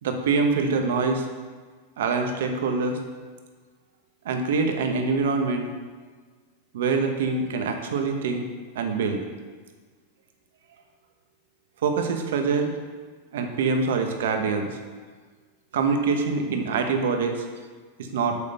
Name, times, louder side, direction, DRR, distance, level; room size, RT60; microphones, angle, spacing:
voice 1, 0.0-1.2 2.0-3.0 4.2-5.7 6.7-8.4 8.7-9.2 11.8-12.7 13.3-14.7 15.7-17.5 18.0-18.4, right 4 dB, 80° right, 5 dB, 1.1 m, -24 dB
6.4 x 5.3 x 6.7 m, 1.5 s
supercardioid pair, 160°, 0 cm